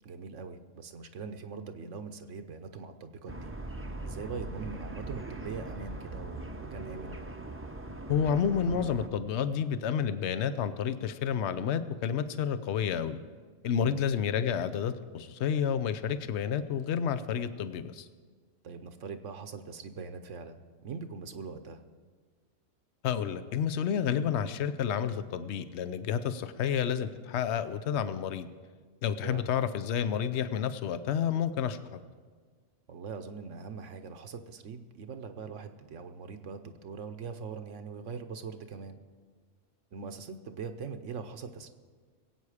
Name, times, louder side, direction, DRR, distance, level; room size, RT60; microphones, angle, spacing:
voice 1, 0.0-3.5 4.0-7.2 13.7-14.0 18.6-21.8 29.2-29.5 32.9-39.0 39.9-41.7, right 5 dB, 75° right, 8 dB, 1.2 m, -42 dB
sound 1, 3.3-9.1, right 2 dB, 15° right, 0.6 m, -41 dB
voice 2, 8.1-13.2 13.6-18.1 23.0-28.5 29.0-31.8, left 8 dB, 65° left, 11 dB, 0.9 m, -30 dB
21.5 x 8.5 x 4.9 m, 1.5 s
omnidirectional pair, 1.3 m